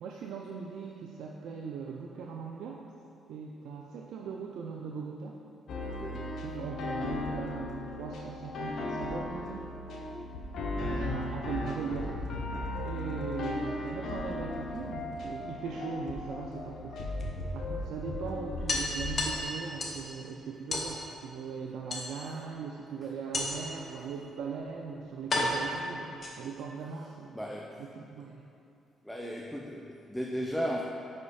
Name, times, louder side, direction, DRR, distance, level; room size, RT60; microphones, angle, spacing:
voice 1, 0.0-2.8 3.3-5.4 6.4-9.7 10.8-12.2 12.8-17.1 17.5-27.4 27.8-28.4, right 5 dB, 80° right, 0 dB, 0.4 m, -39 dB
sound 1, 5.7-19.4, left 2 dB, 65° left, 0.7 m, -36 dB
voice 2, 6.0-6.3 27.3-27.8 29.0-30.8, equal, ahead, 0 dB, 0.4 m, -35 dB
sound 2, 14.6-15.7 17.2-17.3 17.7-17.8 18.1-18.2 18.7-20.1 20.7-20.9 21.9-22.5 23.3-23.8 24.6-24.7 25.3-26.7, left 2 dB, 40° left, 1.0 m, -33 dB
5.4 x 5.0 x 4.1 m, 2.6 s
cardioid pair, 90°, 0 cm